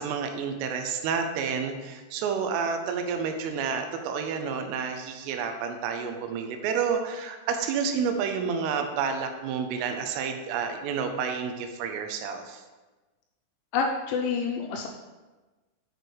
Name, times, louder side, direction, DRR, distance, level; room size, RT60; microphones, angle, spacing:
voice 1, 0.0-12.6, right 6 dB, 85° right, 6 dB, 3.2 m, -30 dB
voice 2, 13.7-14.9, left 5 dB, 85° left, 2 dB, 2.7 m, -27 dB
8.2 x 6.8 x 3.1 m, 1.2 s
omnidirectional pair, 5.8 m